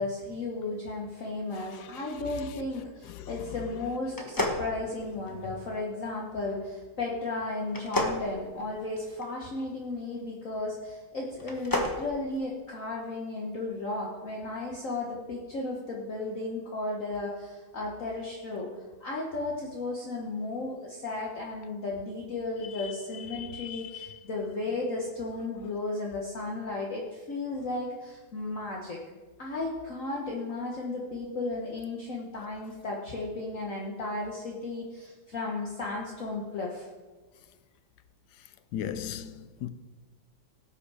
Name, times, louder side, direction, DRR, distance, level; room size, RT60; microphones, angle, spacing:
voice 1, 0.0-18.7 19.0-29.0 29.4-36.9, left 2 dB, 45° left, 1.4 m, -34 dB
voice 2, 1.7-2.1 3.1-3.3 22.8-22.9 23.3-24.1 38.7-39.7, left 9 dB, 70° left, 1.0 m, -38 dB
sound 1, 4.1-5.5 7.7-9.3 11.3-12.0, left 1 dB, 15° left, 0.7 m, -31 dB
17.0 x 5.7 x 4.8 m
omnidirectional pair, 2.1 m